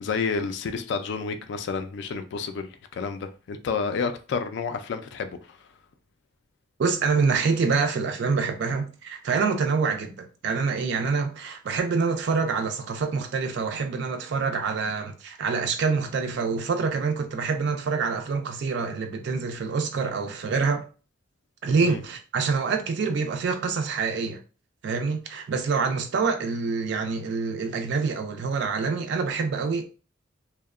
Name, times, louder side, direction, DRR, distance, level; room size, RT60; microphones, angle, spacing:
voice 1, 0.0-5.3 21.8-22.0, left 5 dB, 60° left, 0.3 m, -30 dB
voice 2, 6.8-20.8 21.6-24.4 24.8-29.8, right 5 dB, 60° right, 0.3 m, -26 dB
2.7 x 2.0 x 2.4 m
head